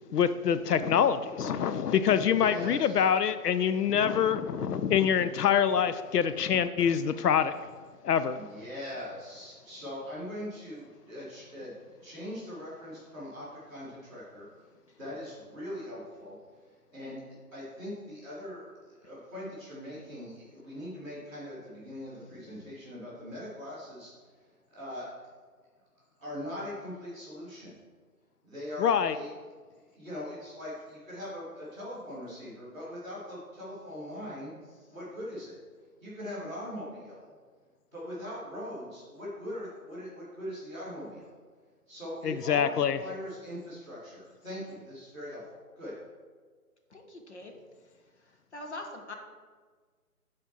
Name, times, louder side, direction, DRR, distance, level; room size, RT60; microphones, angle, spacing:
voice 1, 0.1-7.5 8.0-8.4 28.8-29.1 42.2-43.0, left 8 dB, 85° left, 12 dB, 0.6 m, -25 dB
voice 2, 2.3-3.1 8.4-14.5 15.0-25.1 25.9-27.7 28.4-29.3 29.9-34.5 34.9-37.3 37.9-41.3 41.9-45.9, left 1 dB, 5° left, -14 dB, 1.4 m, -41 dB
voice 3, 46.9-47.5 48.2-49.1, left 2 dB, 45° left, 3 dB, 0.9 m, -43 dB
6.1 x 4.3 x 6.1 m, 1.5 s
hypercardioid pair, 165°, 46 cm